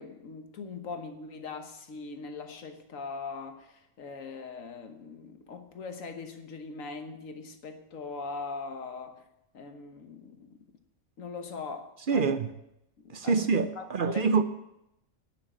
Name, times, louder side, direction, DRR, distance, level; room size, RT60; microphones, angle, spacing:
voice 1, 0.0-9.2 9.5-10.6 11.2-12.4 13.0-13.4 13.8-14.4, left 4 dB, 80° left, 1.5 m, -41 dB
voice 2, 12.1-12.5 13.1-14.4, right 5 dB, 55° right, 0.6 m, -26 dB
10.5 x 6.3 x 8.6 m
omnidirectional pair, 1.4 m